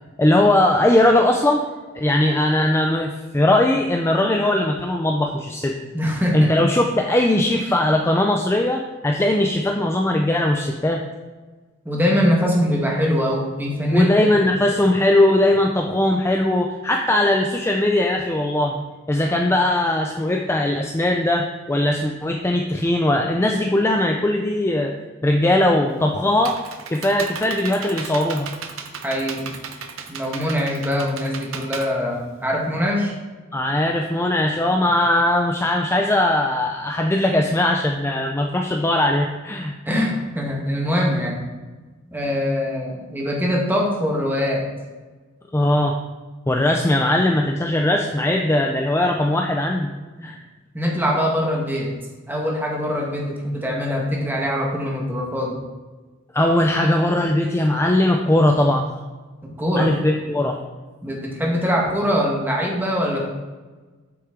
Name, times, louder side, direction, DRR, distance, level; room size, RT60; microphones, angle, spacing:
voice 1, 0.2-1.6 1.9-5.8 6.3-11.0 13.9-24.9 25.2-26.6 26.9-28.5 33.5-39.7 45.5-46.0 46.5-49.9 50.2-50.4 56.3-58.9 59.8-60.6, left 1 dB, 10° left, 2 dB, 0.4 m, -19 dB
voice 2, 5.9-6.5 11.8-14.5 29.0-29.5 30.1-33.1 39.8-41.4 42.1-44.6 50.2-50.3 50.7-51.9 52.3-55.6 59.4-60.0 61.0-63.3, equal, 10° right, -2 dB, 1.4 m, -23 dB
Computer keyboard, 25.9-32.8, right 6 dB, 70° right, 0.7 m, -35 dB
8.0 x 6.0 x 3.7 m, 1.3 s
head